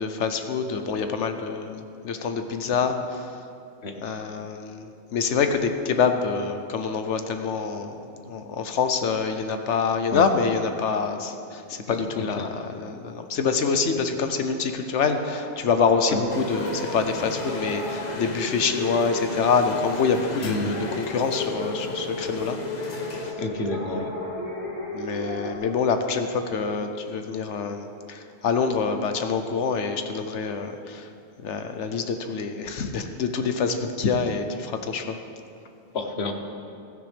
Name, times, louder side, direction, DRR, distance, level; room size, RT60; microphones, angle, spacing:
voice 1, 0.0-3.3 4.0-7.9 8.2-22.6 24.9-31.1 31.4-35.2, left 5 dB, 85° left, 7 dB, 1.2 m, -26 dB
voice 2, 11.9-12.5 16.1-16.2 20.4-20.7 23.4-24.1 33.7-33.8 35.9-36.3, left 3 dB, 65° left, 4 dB, 1.3 m, -30 dB
sound 1, 15.2-25.6, left 1 dB, 45° right, 2.4 m, -34 dB
sound 2, 16.3-23.3, left 3 dB, 40° left, 0.9 m, -38 dB
16.0 x 13.0 x 3.5 m, 2.5 s
omnidirectional pair, 1.2 m